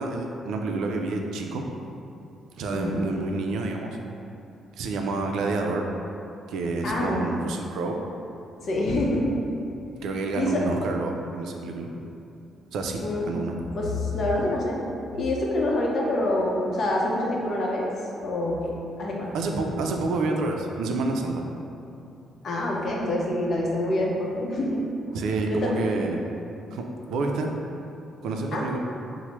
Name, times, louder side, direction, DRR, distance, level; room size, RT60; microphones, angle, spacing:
voice 1, 0.0-1.7 2.6-4.0 4.8-5.9 6.5-8.0 10.0-11.9 12.7-13.6 19.3-21.4 25.1-26.2 26.7-27.5 28.2-28.8, right 3 dB, 80° right, 2 dB, 0.3 m, -28 dB
voice 2, 2.7-3.1 6.8-7.2 8.6-9.4 10.3-10.6 13.0-13.3 13.7-14.8 15.1-17.9 18.2-19.3 22.4-24.8 25.5-25.9 28.5-28.6, left 1 dB, 55° left, -3 dB, 0.6 m, -26 dB
4.3 x 2.0 x 3.0 m, 2.7 s
cardioid pair, 90°, 0 cm